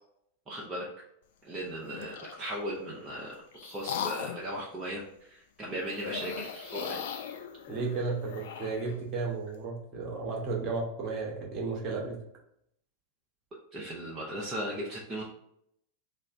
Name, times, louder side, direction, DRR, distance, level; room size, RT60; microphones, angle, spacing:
voice 1, 0.5-0.9 1.4-3.3 3.6-7.1 13.7-15.3, right 1 dB, 20° right, -5 dB, 0.7 m, -37 dB
sound 1, 1.8-2.4 3.1-4.5 5.9-8.9, left 8 dB, 55° left, 0.4 m, -39 dB
voice 2, 7.7-12.2, right 4 dB, 35° right, -1 dB, 1.2 m, -33 dB
3.2 x 2.4 x 4.3 m, 0.74 s
figure-of-eight pair, 90°, 0 cm